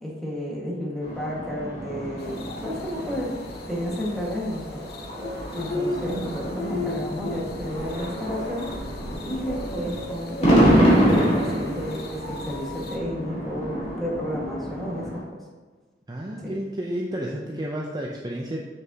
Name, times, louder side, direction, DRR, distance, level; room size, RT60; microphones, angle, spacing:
voice 1, 0.0-3.3 3.7-4.8 5.5-8.7 9.2-15.4 16.4-16.5, equal, ahead, -5 dB, 1.6 m, -32 dB
sound 1, 1.0-15.2, equal, 40° left, 2.2 m, -26 dB
sound 2, 2.2-13.0, left 2 dB, 60° left, 0.7 m, -37 dB
voice 2, 16.1-18.6, right 1 dB, 25° right, -2 dB, 0.6 m, -31 dB
7.1 x 6.7 x 2.8 m, 1.3 s
head